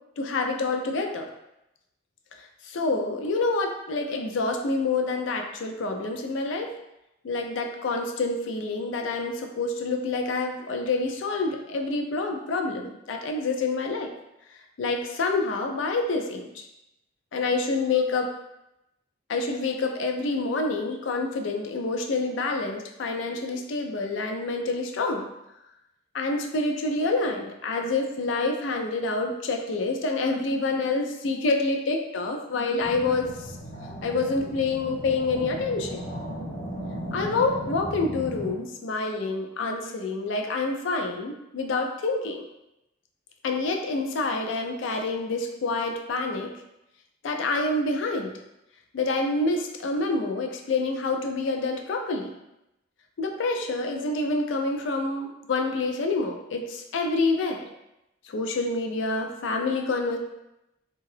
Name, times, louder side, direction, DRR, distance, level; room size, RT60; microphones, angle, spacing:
voice 1, 0.2-1.3 2.4-6.8 7.2-14.1 14.8-16.7 17.3-18.3 19.3-25.3 26.1-33.5 34.0-36.0 37.1-42.5 43.4-46.5 47.2-48.4 48.9-52.3 53.2-57.7 58.2-60.2, left 3 dB, 75° left, 3 dB, 0.4 m, -27 dB
sound 1, 32.8-38.5, equal, 55° left, 0.8 m, -36 dB
2.7 x 2.3 x 3.2 m, 0.88 s
head